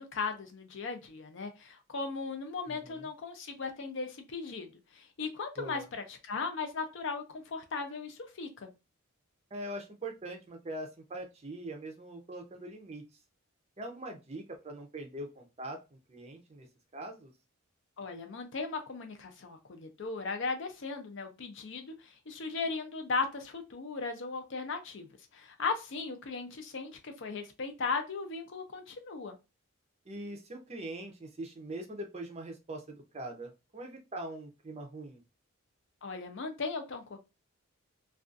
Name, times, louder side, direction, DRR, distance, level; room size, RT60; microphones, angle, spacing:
voice 1, 0.0-8.7 18.0-25.1 25.3-29.4 36.0-37.2, left 4 dB, 55° left, 6 dB, 0.5 m, -37 dB
voice 2, 2.7-3.1 5.6-5.9 9.5-13.0 13.8-16.7 16.9-17.3 30.1-35.2, right 1 dB, 30° right, 3 dB, 0.5 m, -42 dB
2.4 x 2.3 x 2.5 m, 0.27 s
head